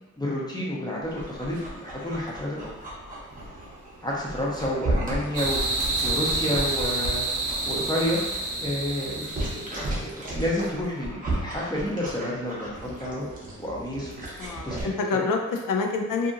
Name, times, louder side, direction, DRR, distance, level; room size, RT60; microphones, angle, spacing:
voice 1, 0.2-2.7 4.0-5.6 6.0-7.3 7.7-13.3 13.6-14.2 14.6-14.8 15.1-15.3, left 1 dB, 15° left, -5 dB, 0.5 m, -30 dB
Dog, 1.0-14.8, right 1 dB, 25° right, 0.7 m, -35 dB
sound 1, 5.3-9.9, right 2 dB, 80° right, 0.6 m, -28 dB
voice 2, 14.4-16.3, left 4 dB, 90° left, 3 dB, 0.5 m, -27 dB
2.7 x 2.5 x 2.5 m, 1.1 s
wide cardioid pair, 135°, 31 cm